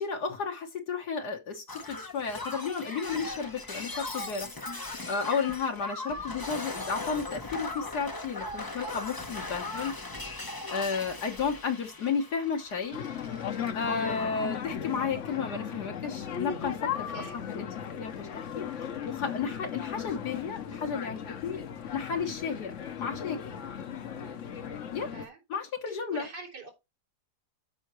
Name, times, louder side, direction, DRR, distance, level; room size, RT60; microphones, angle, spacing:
voice 1, 0.0-4.8 5.1-9.9 10.7-13.0 13.7-17.7 18.0-21.6 21.9-22.7 23.0-23.4 24.9-25.1 25.5-26.3, left 5 dB, 70° left, 1.8 m, -33 dB
Shatter, 1.7-13.7 14.0-14.6 15.6-15.8, left 2 dB, 20° left, 0.6 m, -39 dB
sound 1, 12.9-25.2, left 8 dB, 55° left, 1.1 m, -37 dB
voice 2, 17.1-17.4 24.1-24.5 25.1-25.4 25.9-26.7, right 4 dB, 80° right, 4.2 m, -46 dB
12.5 x 5.8 x 3.1 m
omnidirectional pair, 1.8 m